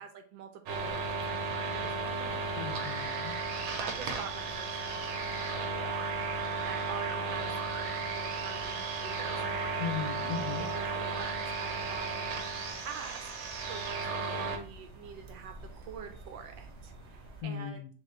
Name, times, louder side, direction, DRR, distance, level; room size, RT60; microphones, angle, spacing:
voice 1, 0.0-2.4 3.8-5.2 6.6-9.9 10.6-12.4 12.8-17.8, right 6 dB, 70° right, 6 dB, 1.3 m, -45 dB
sound 1, 0.7-17.4, right 3 dB, 55° right, 0.7 m, -51 dB
sound 2, 0.7-14.6, right 4 dB, 90° right, 1.7 m, -34 dB
voice 2, 2.6-3.3 9.8-10.6 17.4-17.9, left 7 dB, 70° left, 1 dB, 0.9 m, -37 dB
3.8 x 3.0 x 4.2 m, 0.42 s
omnidirectional pair, 2.3 m